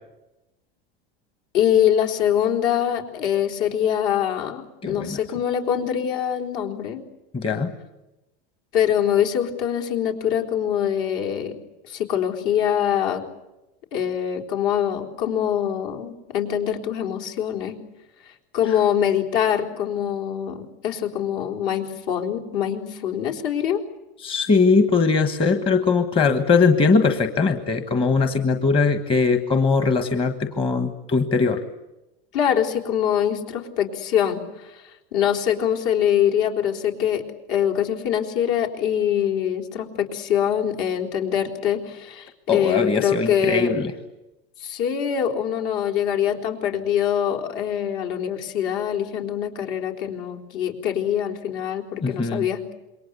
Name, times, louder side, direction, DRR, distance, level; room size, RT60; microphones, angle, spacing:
voice 1, 1.5-7.0 8.7-11.5 11.9-13.2 13.9-17.8 18.5-23.8 32.3-34.8 35.1-37.2 37.5-43.7 44.6-52.8, left 9 dB, 60° left, 3 dB, 4.3 m, -24 dB
voice 2, 4.8-5.2 7.3-7.7 18.7-18.8 24.2-31.6 42.5-43.9 52.0-52.5, left 4 dB, 15° left, 7 dB, 1.4 m, -20 dB
27.5 x 23.0 x 8.2 m, 0.98 s
supercardioid pair, 160°, 30 cm